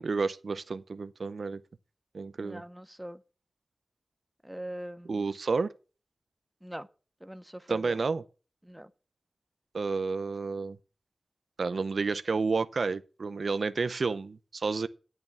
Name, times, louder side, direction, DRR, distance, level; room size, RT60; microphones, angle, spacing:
voice 1, 0.0-1.6 2.1-2.6 5.0-5.7 7.7-8.2 9.7-10.8 11.6-14.9, right 4 dB, 75° right, 0.6 m, -30 dB
voice 2, 2.4-3.2 4.4-5.2 6.6-6.9 7.2-8.0 8.7-8.9, equal, 10° right, 0.7 m, -42 dB
11.0 x 6.6 x 5.8 m
wide cardioid pair, 70°, 0 cm